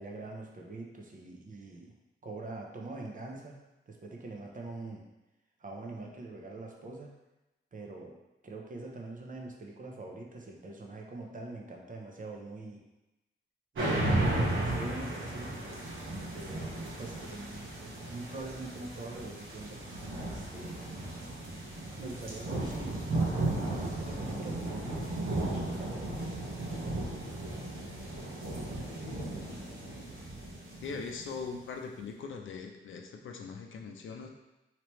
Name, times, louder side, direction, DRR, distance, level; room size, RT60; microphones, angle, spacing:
voice 1, 0.0-1.9 2.2-3.6 3.9-5.0 5.6-7.1 7.7-8.1 8.4-12.8 13.7-15.6 16.3-16.7 17.0-20.9 22.0-23.0 23.5-26.2, right 2 dB, 40° right, 0 dB, 0.7 m, -44 dB
sound 1, 13.7-31.6, right 2 dB, 70° right, 1.0 m, -35 dB
voice 2, 30.8-34.3, left 5 dB, 70° left, 3 dB, 0.5 m, -41 dB
3.2 x 2.9 x 3.0 m, 1.0 s
cardioid pair, 70°, 21 cm